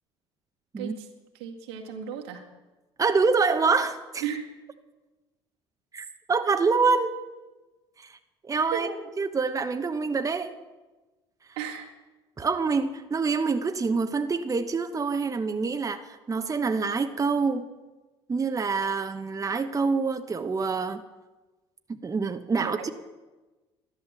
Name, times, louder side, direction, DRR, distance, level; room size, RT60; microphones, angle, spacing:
voice 1, 0.8-1.1 1.3-2.5 4.2-4.5 8.7-9.0 11.6-11.9 22.6-22.9, right 8 dB, 75° right, 2 dB, 2.0 m, -35 dB
voice 2, 3.0-4.2 5.9-7.1 8.0-8.2 8.5-8.9 9.2-10.5 12.4-17.7 18.3-21.0 21.9-22.9, right 4 dB, 25° right, 7 dB, 1.0 m, -26 dB
12.5 x 12.0 x 7.4 m, 1.2 s
hypercardioid pair, 60°, 13 cm